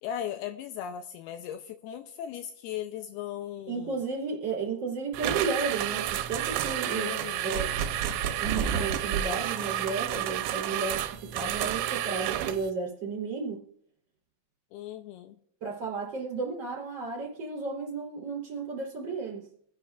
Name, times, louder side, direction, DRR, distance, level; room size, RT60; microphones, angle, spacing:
voice 1, 0.0-4.0 6.8-7.6 14.7-15.4, left 10 dB, 80° left, 7 dB, 2.5 m, -38 dB
voice 2, 3.7-7.1 7.4-7.7 8.4-13.6 15.6-19.4, right 4 dB, 30° right, -2 dB, 4.1 m, -33 dB
sound 1, 5.1-12.7, right 13 dB, 90° right, 2.8 m, -31 dB
sound 2, 7.5-9.2, right 6 dB, 50° right, 1.8 m, -31 dB
25.5 x 10.5 x 2.5 m, 0.66 s
omnidirectional pair, 4.8 m